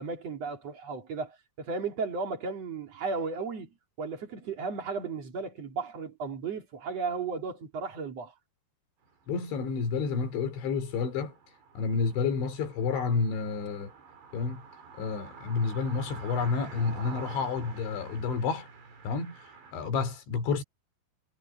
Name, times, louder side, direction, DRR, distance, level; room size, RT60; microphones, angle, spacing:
voice 1, 0.0-3.7 4.0-8.3, right 4 dB, 40° right, 3.4 m, -35 dB
sound 1, 9.1-19.7, right 5 dB, 70° right, 7.7 m, -48 dB
voice 2, 9.3-11.4 11.8-13.9 14.3-14.6 15.0-18.7 19.0-19.4 19.7-20.6, left 5 dB, 90° left, 5.9 m, -30 dB
omnidirectional pair, 5.1 m